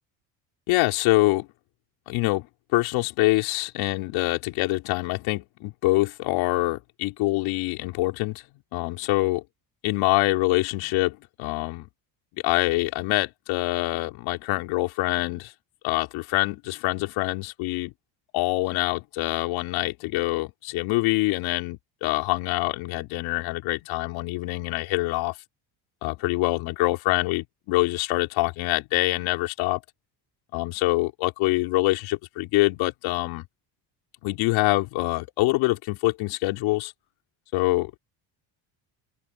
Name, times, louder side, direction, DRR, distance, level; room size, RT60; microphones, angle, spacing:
voice 1, 0.7-1.5 2.1-2.5 2.7-8.4 8.7-9.4 9.8-11.9 12.3-15.5 15.8-17.9 18.3-25.4 26.0-29.8 30.5-33.4 34.2-36.9 37.5-38.0, left 20 dB, 80° left, 3.7 m, -25 dB
open air
cardioid pair, 110°, 46 cm